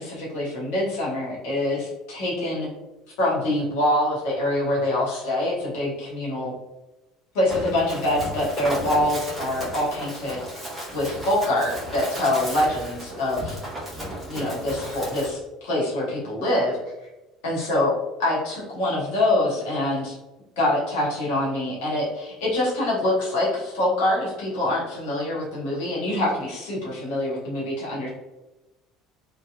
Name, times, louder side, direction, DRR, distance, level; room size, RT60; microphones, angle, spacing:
voice 1, 0.0-2.7 3.2-6.5 7.3-10.5 10.9-13.6 14.3-16.8 17.4-17.9 18.2-20.2 20.6-28.1, left 1 dB, 60° left, -6 dB, 0.9 m, -25 dB
Run, 7.5-15.3, equal, 10° right, 1.0 m, -34 dB
2.7 x 2.2 x 2.2 m, 1.0 s
figure-of-eight pair, 65°, 0 cm